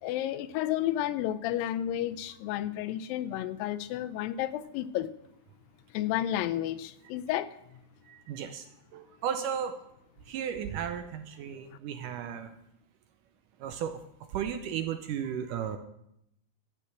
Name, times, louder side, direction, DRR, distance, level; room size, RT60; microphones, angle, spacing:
voice 1, 0.0-5.1 5.9-7.8, left 12 dB, 85° left, 14 dB, 2.4 m, -32 dB
voice 2, 8.1-8.7 8.9-9.7 10.3-12.6 13.6-14.0 14.3-15.8, right 8 dB, 75° right, 7 dB, 2.1 m, -34 dB
13.5 x 6.2 x 7.8 m, 0.80 s
omnidirectional pair, 4.0 m